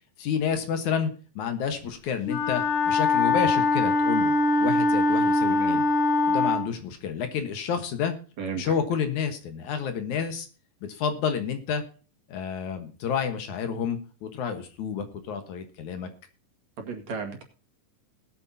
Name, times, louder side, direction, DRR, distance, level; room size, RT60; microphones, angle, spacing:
voice 1, 0.2-4.3 4.6-5.9 6.3-8.1 8.6-10.5 10.8-11.8 12.3-16.1, left 7 dB, 70° left, 8 dB, 2.7 m, -30 dB
Wind instrument woodwind instrument, 2.2-6.7, left 2 dB, 85° left, 4.0 m, -22 dB
voice 2, 5.5-5.8 8.4-8.7 16.8-17.4, right 5 dB, 60° right, 3 dB, 3.1 m, -34 dB
19.5 x 9.0 x 2.8 m, 0.36 s
omnidirectional pair, 3.7 m